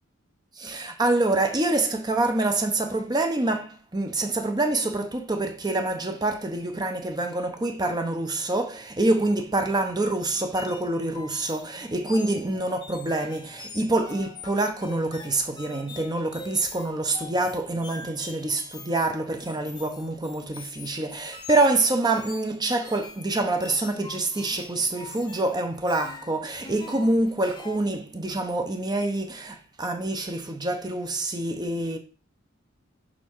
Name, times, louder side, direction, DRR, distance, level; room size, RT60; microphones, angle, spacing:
voice 1, 0.6-32.0, right 2 dB, 20° right, 0.8 m, -26 dB
sound 1, 10.3-27.8, left 4 dB, 20° left, 0.8 m, -44 dB
6.5 x 4.4 x 4.6 m
head